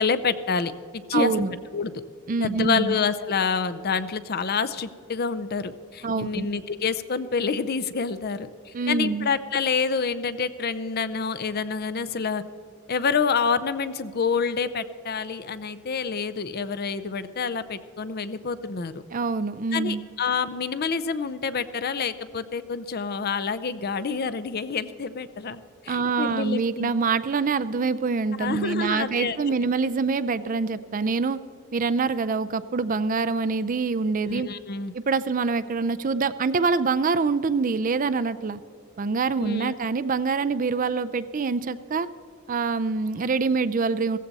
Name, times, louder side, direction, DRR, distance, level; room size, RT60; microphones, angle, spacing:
voice 1, 0.0-1.3 1.7-1.9 2.4-12.4 12.9-18.9 19.7-26.9 28.4-29.6 34.2-34.9 39.4-39.8, left 5 dB, 45° left, 13 dB, 0.6 m, -27 dB
voice 2, 1.1-1.5 2.3-3.0 6.0-6.5 8.7-9.3 19.1-20.0 25.9-31.4 31.7-34.5 34.9-38.6 39.0-42.1 42.5-44.2, right 4 dB, 40° right, 13 dB, 0.4 m, -25 dB
16.5 x 15.0 x 4.1 m, 2.3 s
head